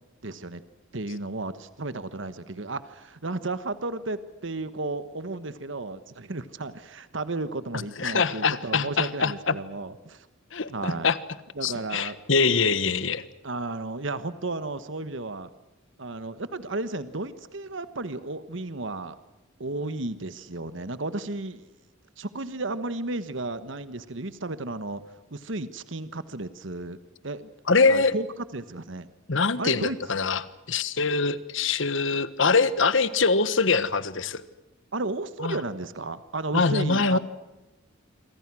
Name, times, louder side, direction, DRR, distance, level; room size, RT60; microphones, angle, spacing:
voice 1, 0.2-0.6 0.9-10.3 10.7-11.1 11.5-12.2 13.4-15.5 16.0-19.1 19.6-21.6 22.2-27.0 27.2-27.5 27.8-28.3 28.5-29.1 29.6-30.0 34.9-37.2, right 2 dB, 70° right, 13 dB, 1.2 m, -33 dB
voice 2, 7.7-9.6 10.5-11.2 11.6-13.2 27.7-28.1 29.3-30.4 30.7-34.4 35.4-35.6 36.5-37.2, left 4 dB, 70° left, 15 dB, 1.4 m, -23 dB
28.5 x 24.5 x 6.2 m, 1.0 s
head